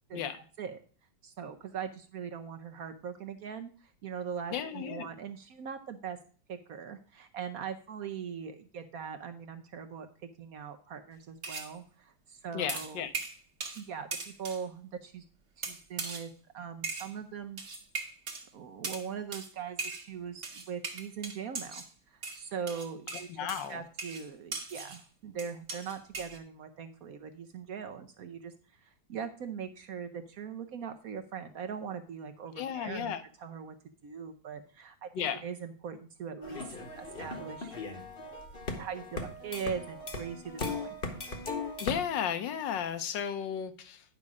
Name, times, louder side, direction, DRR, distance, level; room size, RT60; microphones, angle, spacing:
voice 1, 0.1-0.8 1.2-6.2 6.5-10.1 10.4-13.0 13.7-15.2 15.6-17.6 18.5-21.8 22.1-28.5 28.8-33.1 33.4-33.8 34.0-35.1 35.4-36.6 37.0-37.8 38.8-40.9, right 7 dB, 65° right, 7 dB, 0.9 m, -41 dB
voice 2, 4.5-5.1 12.5-13.1 23.3-23.8 32.6-33.2 35.1-35.4 41.8-44.0, left 8 dB, 70° left, 10 dB, 1.4 m, -34 dB
sound 1, 11.4-11.7 12.7-13.9 14.1-14.6 15.6-16.3 16.8-17.1 17.6-18.4 18.8-19.1 19.3-19.5 19.8-20.1 20.4-21.9 22.2-25.0 25.4-26.4, right 4 dB, 40° right, 1.4 m, -39 dB
sound 2, 36.4-42.0, left 3 dB, 35° left, 1.1 m, -38 dB
9.6 x 5.4 x 4.8 m, 0.41 s
omnidirectional pair, 2.2 m